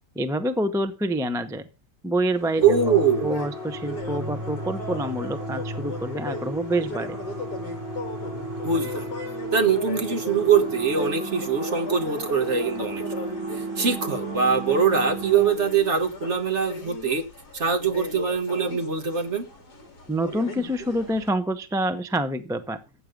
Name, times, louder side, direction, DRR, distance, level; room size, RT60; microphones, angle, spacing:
voice 1, 0.1-1.7 2.0-2.9 3.2-7.2 20.1-22.8, right 1 dB, 5° right, 0.8 m, -27 dB
sound 1, 2.3-21.3, left 2 dB, 65° left, 4.1 m, -38 dB
voice 2, 2.6-3.4 8.6-9.1 9.5-17.2 17.5-19.4, right 6 dB, 45° right, 1.6 m, -23 dB
sound 2, 2.6-15.5, right 2 dB, 85° right, 5.8 m, -34 dB
15.0 x 8.7 x 5.3 m
omnidirectional pair, 1.9 m